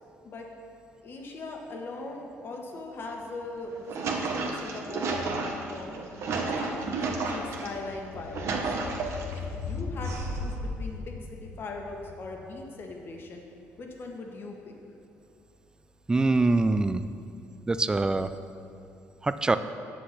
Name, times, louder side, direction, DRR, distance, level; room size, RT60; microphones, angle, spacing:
voice 1, 1.0-6.0 6.4-8.7 9.3-13.4 13.8-14.7, left 2 dB, 45° left, 1 dB, 1.3 m, -40 dB
sound 1, 3.2-3.3 3.6-13.9 14.2-14.3, left 4 dB, 75° left, 0.7 m, -41 dB
sound 2, 3.6-7.7 8.1-9.4 10.0-10.7, right 3 dB, 65° right, 1.1 m, -32 dB
voice 2, 16.1-17.1 17.7-18.3 19.2-19.6, right 3 dB, 15° right, 11 dB, 0.4 m, -24 dB
7.8 x 6.2 x 5.9 m, 2.6 s
cardioid pair, 100°, 5 cm